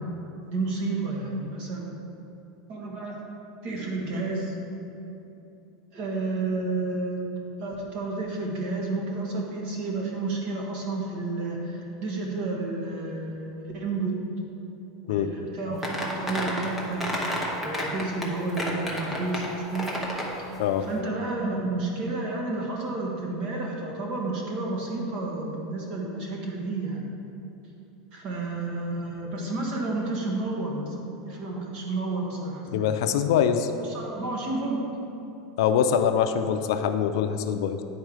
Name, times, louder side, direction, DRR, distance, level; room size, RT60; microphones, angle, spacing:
voice 1, 0.5-2.2 2.7-3.2 3.6-4.5 5.9-14.2 15.0-17.0 17.6-19.9 20.8-27.0 28.1-31.0 31.3-32.9 33.8-34.8, right 3 dB, 45° right, -1 dB, 1.4 m, -31 dB
sound 1, 15.8-18.2 18.6-20.3, equal, 5° right, 0.9 m, -30 dB
voice 2, 32.7-33.7 35.6-37.8, left 8 dB, 70° left, 8 dB, 0.5 m, -24 dB
9.4 x 4.5 x 4.8 m, 2.8 s
supercardioid pair, 160°, 2 cm